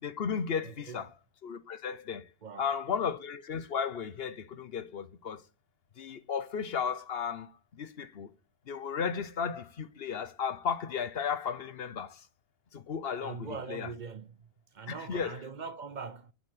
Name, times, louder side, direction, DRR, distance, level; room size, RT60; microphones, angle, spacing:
voice 1, 0.0-1.1 1.4-2.2 2.6-5.4 6.0-8.3 8.7-12.2 12.7-13.9 14.9-15.4, left 6 dB, 65° left, 1.1 m, -34 dB
voice 2, 0.6-1.1 2.4-2.8 13.2-16.3, right 5 dB, 50° right, 0.7 m, -42 dB
7.4 x 6.3 x 7.9 m
omnidirectional pair, 1.1 m